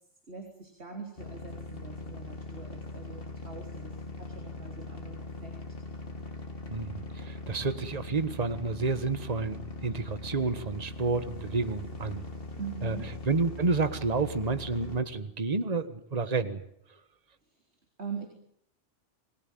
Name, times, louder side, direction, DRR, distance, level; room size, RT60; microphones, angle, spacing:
voice 1, 0.3-5.8 12.6-13.1 17.4-17.6 18.0-18.3, right 5 dB, 60° right, 2 dB, 4.1 m, -43 dB
sound 1, 1.2-15.0, left 2 dB, 50° left, 2.7 m, -41 dB
voice 2, 6.7-12.2 12.8-13.0 13.3-16.6, right 4 dB, 35° right, 11 dB, 1.6 m, -30 dB
27.5 x 21.0 x 9.3 m, 0.71 s
omnidirectional pair, 1.2 m